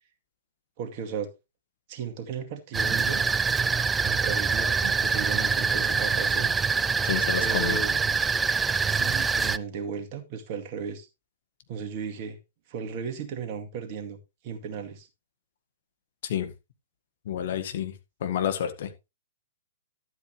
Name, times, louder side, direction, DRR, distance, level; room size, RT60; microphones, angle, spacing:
voice 1, 0.8-1.3 1.9-3.2 4.0-6.5 7.4-8.1 8.9-11.1 11.7-12.4 12.7-14.2 14.4-15.1, right 6 dB, 40° right, 2.2 m, -35 dB
sound 1, 2.7-9.6, right 5 dB, 10° right, 0.4 m, -25 dB
voice 2, 7.0-7.8 16.2-16.5 17.2-17.9 18.2-18.9, left 9 dB, 55° left, 1.7 m, -29 dB
12.0 x 8.1 x 3.2 m
figure-of-eight pair, 115°, 0 cm